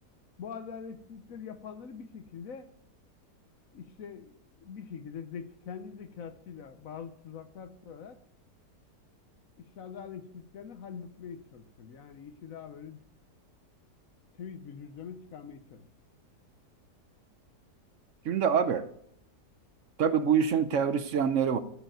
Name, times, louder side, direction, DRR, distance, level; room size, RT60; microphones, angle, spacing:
voice 1, 0.4-2.7 3.7-8.2 9.6-13.0 14.3-15.9, left 7 dB, 60° left, 1.2 m, -44 dB
voice 2, 18.2-18.9 20.0-21.6, right 7 dB, 60° right, 0.9 m, -25 dB
14.5 x 5.2 x 9.0 m
omnidirectional pair, 1.8 m